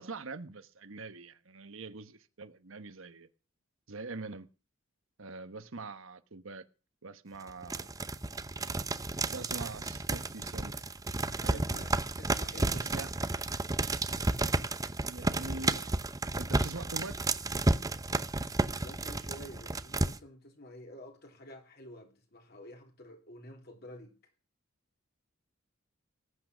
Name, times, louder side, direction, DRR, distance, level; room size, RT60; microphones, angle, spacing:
voice 1, 0.0-3.3 3.9-4.5 5.2-6.6 7.0-7.9 9.1-10.7 11.4-11.8 12.7-13.1 15.1-16.0 16.3-17.2, right 3 dB, 70° right, 1.2 m, -43 dB
sound 1, 7.5-20.2, right 2 dB, 15° right, 0.7 m, -32 dB
voice 2, 11.5-12.9 18.8-24.1, left 1 dB, 50° left, 3.2 m, -50 dB
19.5 x 8.9 x 6.1 m
head